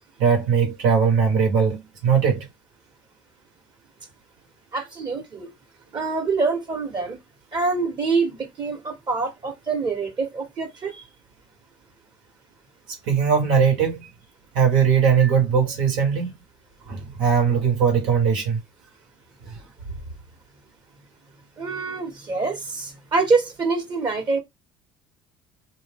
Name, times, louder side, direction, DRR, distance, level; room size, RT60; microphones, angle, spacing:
voice 1, 0.2-2.5 13.0-14.1 14.5-16.3 16.9-18.6 19.4-19.6, right 6 dB, 75° right, 1.4 m, -20 dB
voice 2, 4.7-5.5 5.9-7.2 7.5-11.0 21.6-24.4, right 4 dB, 40° right, 1.3 m, -25 dB
2.6 x 2.2 x 3.5 m
hypercardioid pair, 65°, 11 cm